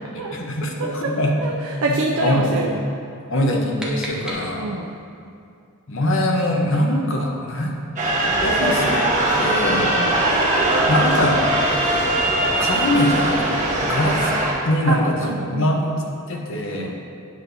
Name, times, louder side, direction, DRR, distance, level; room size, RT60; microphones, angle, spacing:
voice 1, 0.1-1.3 1.9-2.6 3.3-4.7 5.9-7.8 8.4-9.1 9.4-9.9 10.9-11.4 12.5-14.3 14.6-16.9, left 1 dB, 60° left, 0 dB, 0.9 m, -22 dB
voice 2, 0.8-1.1 1.4-2.8 4.6-5.0 9.6-10.2 14.8-15.7 16.8-17.0, right 2 dB, 70° right, 0 dB, 0.5 m, -26 dB
sound 1, 3.3-5.0, right 1 dB, 5° right, 0.8 m, -35 dB
sound 2, 8.0-14.5, right 1 dB, 35° right, 1.0 m, -20 dB
9.4 x 6.0 x 2.6 m, 2.5 s
head